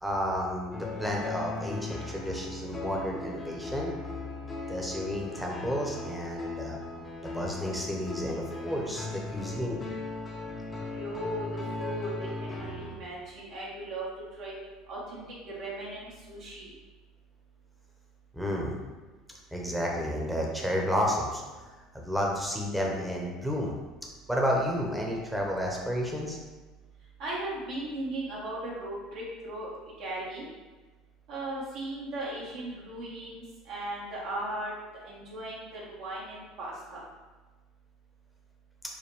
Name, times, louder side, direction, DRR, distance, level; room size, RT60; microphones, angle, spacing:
voice 1, 0.0-3.9 4.7-6.8 7.2-9.8 18.3-18.8 19.5-21.4 21.9-23.7 24.3-26.4, equal, 5° right, -1 dB, 0.9 m, -31 dB
sound 1, 0.7-13.0, left 3 dB, 25° left, 0.8 m, -38 dB
voice 2, 10.9-14.1 14.4-14.6 14.9-16.7 27.2-29.7 30.0-30.5 31.3-34.7 35.0-37.0, right 1 dB, 65° right, -6 dB, 1.1 m, -37 dB
5.3 x 2.2 x 3.1 m, 1.3 s
hypercardioid pair, 80°, 0 cm